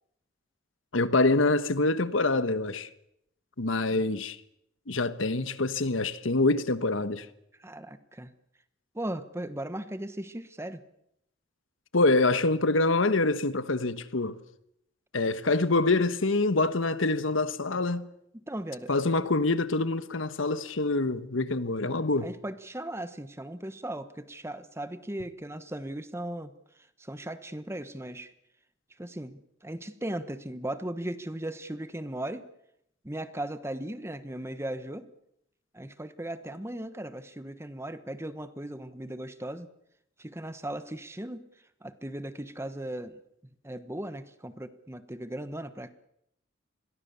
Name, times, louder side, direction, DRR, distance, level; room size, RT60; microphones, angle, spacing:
voice 1, 0.9-2.9 3.6-4.4 4.9-7.3 11.9-14.4 15.1-18.1 18.9-22.3, left 2 dB, 80° left, 1.3 m, -25 dB
voice 2, 7.6-8.3 8.9-10.8 18.3-18.9 22.2-28.3 29.0-32.4 33.0-35.1 35.7-39.7 40.2-41.5 41.8-43.2 43.6-45.9, right 1 dB, 15° right, 1.1 m, -37 dB
27.0 x 22.0 x 7.0 m
head